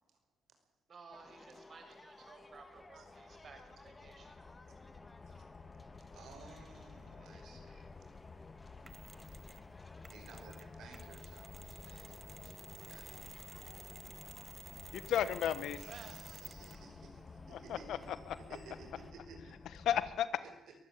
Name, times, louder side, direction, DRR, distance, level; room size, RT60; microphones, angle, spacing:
voice 1, 0.9-4.4 15.7-16.2, right 5 dB, 45° right, 6 dB, 5.6 m, -55 dB
sound 1, 1.1-19.1, left 2 dB, 20° left, 1.9 m, -58 dB
sound 2, 2.4-20.2, left 4 dB, 35° left, 1.3 m, -54 dB
voice 2, 6.1-7.9 10.1-12.5 12.9-13.2 15.8-19.6 20.4-20.7, right 4 dB, 75° right, 5 dB, 5.3 m, -56 dB
Mechanisms, 8.9-9.7 10.0-16.9, right 3 dB, 30° right, 1.4 m, -54 dB
voice 3, 14.9-15.8 17.5-18.6 19.7-20.3, left 10 dB, 75° left, 15 dB, 1.3 m, -34 dB
22.5 x 15.0 x 8.5 m, 0.94 s
cardioid pair, 90°, 0 cm